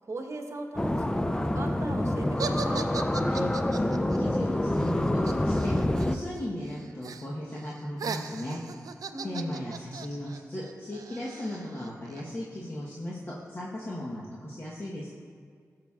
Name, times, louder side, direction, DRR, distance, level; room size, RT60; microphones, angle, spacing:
voice 1, 0.0-2.9 9.1-9.8, right 2 dB, 50° right, 3 dB, 1.0 m, -39 dB
sound 1, 0.8-6.2, left 1 dB, 10° left, 0.3 m, -27 dB
sound 2, 2.4-6.4 6.7-7.3 7.6-12.2, right 6 dB, 70° right, 0.4 m, -39 dB
voice 2, 3.2-5.7 6.1-8.6 9.2-15.1, left 1 dB, 40° left, -6 dB, 1.1 m, -36 dB
13.0 x 6.9 x 2.4 m, 2.1 s
cardioid pair, 60°, 6 cm